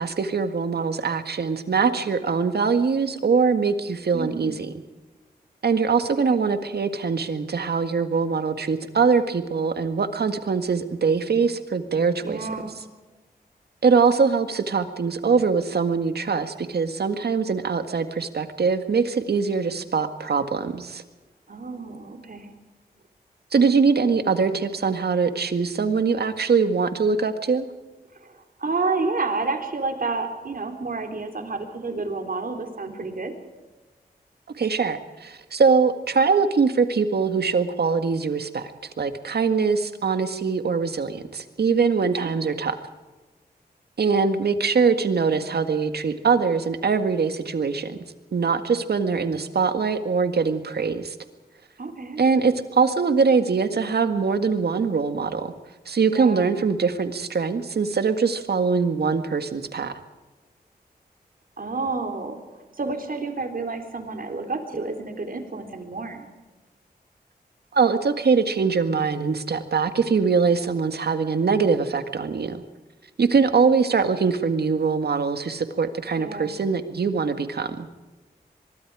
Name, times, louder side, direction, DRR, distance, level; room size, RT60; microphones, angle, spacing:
voice 1, 0.0-4.7 5.6-12.4 13.8-21.0 23.5-27.7 34.6-38.7 39.0-42.8 44.0-48.0 48.3-51.2 52.2-55.5 55.9-59.9 67.7-72.6 73.2-77.9, right 5 dB, 80° right, 9 dB, 1.9 m, -22 dB
voice 2, 4.1-4.5 6.3-6.4 12.2-12.8 21.5-22.5 28.1-33.4 42.0-42.3 51.8-52.2 56.1-56.6 61.6-62.4 62.8-66.3 76.2-76.6, right 3 dB, 60° right, 5 dB, 3.8 m, -30 dB
24.0 x 22.5 x 4.9 m, 1.2 s
wide cardioid pair, 65°, 16 cm